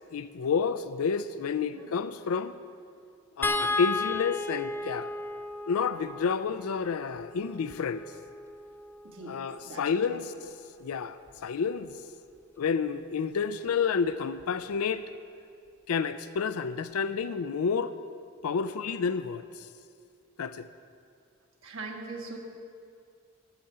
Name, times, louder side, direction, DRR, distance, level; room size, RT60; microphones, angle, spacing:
voice 1, 0.1-2.5 3.4-5.1 5.7-8.0 9.3-10.3 10.8-12.0 12.6-15.0 15.9-17.9 18.4-19.7 20.4-20.7, left 6 dB, 80° left, 13 dB, 0.4 m, -30 dB
voice 2, 1.6-2.0 3.5-3.8 9.0-10.3 21.6-22.4, right 3 dB, 65° right, 1 dB, 1.6 m, -42 dB
sound 1, 3.4-9.7 11.3-11.4 11.8-12.0, left 3 dB, 10° left, 0.4 m, -35 dB
11.5 x 6.7 x 8.6 m, 2.3 s
head